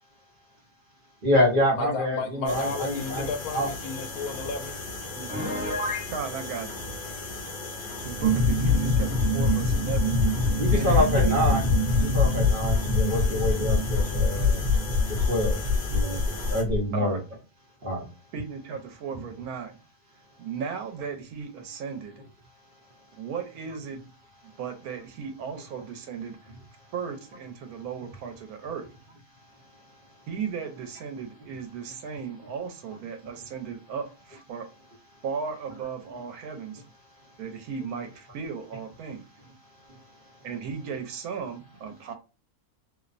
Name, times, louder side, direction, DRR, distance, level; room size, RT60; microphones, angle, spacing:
voice 1, 1.2-3.7 10.6-11.6 12.0-14.6 15.1-15.6 15.9-16.2 16.5-17.2 17.8-18.1, left 1 dB, 45° right, 0.8 m, -26 dB
voice 2, 1.7-4.8, left 4 dB, 75° left, 1.0 m, -33 dB
sound 1, 2.5-16.6, left 2 dB, 45° left, 0.8 m, -37 dB
Piano, 5.3-6.1, left 1 dB, 25° left, 1.1 m, -30 dB
voice 3, 6.1-6.7 8.0-10.1 10.7-11.4 16.9-17.2 18.3-19.7 20.4-22.1 23.2-24.0 24.6-26.4 26.9-28.9 30.3-34.7 35.2-36.8 37.4-39.2 40.4-42.1, right 6 dB, 85° right, 1.1 m, -35 dB
sound 2, 8.2-16.8, left 3 dB, 70° right, 1.2 m, -23 dB
2.8 x 2.1 x 2.4 m
omnidirectional pair, 1.6 m